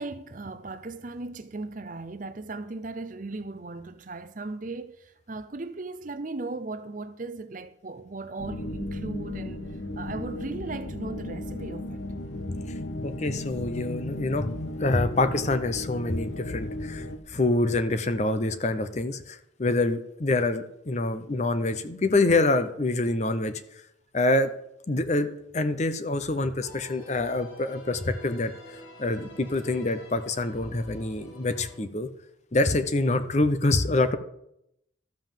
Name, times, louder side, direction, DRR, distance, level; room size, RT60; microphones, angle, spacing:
voice 1, 0.0-4.9 5.3-9.6 10.0-12.0, right 3 dB, 40° right, 0.6 m, -37 dB
sound 1, 8.4-17.2, left 1 dB, 65° left, 0.9 m, -35 dB
voice 2, 13.0-14.5 14.8-23.5 24.1-24.5 24.9-25.3 25.5-28.5 29.0-32.1 32.5-34.2, left 2 dB, 35° left, 0.7 m, -26 dB
sound 2, 26.6-31.8, left 1 dB, 90° left, 4.5 m, -48 dB
12.5 x 5.4 x 7.4 m
head